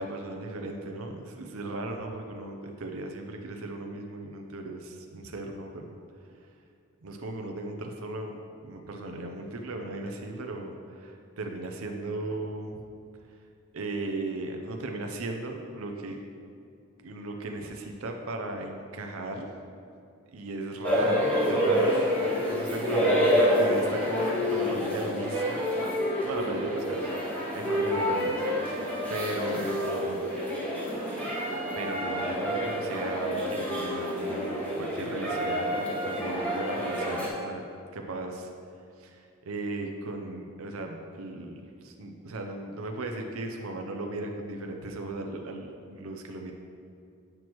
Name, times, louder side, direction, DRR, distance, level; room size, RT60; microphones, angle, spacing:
voice 1, 0.0-6.0 6.3-6.4 7.0-12.8 13.7-16.2 17.0-19.5 20.3-30.2 31.8-37.6 37.9-38.5 39.0-46.5, right 2 dB, 75° right, 3 dB, 0.6 m, -37 dB
sound 1, 20.8-37.3, equal, 5° left, 1.3 m, -28 dB
8.8 x 6.1 x 3.0 m, 2.4 s
head